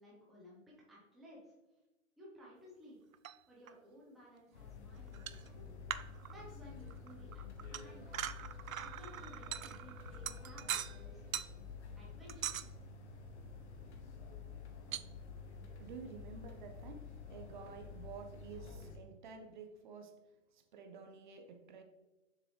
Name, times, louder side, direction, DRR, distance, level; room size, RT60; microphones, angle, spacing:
voice 1, 0.0-1.5 2.2-3.0 3.5-5.8 6.3-8.3 8.8-11.3 12.0-12.7, equal, ahead, -6 dB, 0.8 m, -57 dB
sound 1, 3.1-3.4 3.7-3.8 5.1-5.5 5.9-6.6 6.9-11.0 11.3-11.5 12.3-12.7 14.9-15.0, right 10 dB, 85° right, 0.6 m, -42 dB
sound 2, 4.5-19.0, left 4 dB, 55° left, 1.6 m, -50 dB
Wind instrument woodwind instrument, 7.5-11.6, right 2 dB, 50° right, 2.2 m, -65 dB
voice 2, 15.8-20.1 20.5-21.8, right 5 dB, 35° right, 5 dB, 0.9 m, -51 dB
6.9 x 6.7 x 3.2 m, 1.1 s
hypercardioid pair, 155°, 40 cm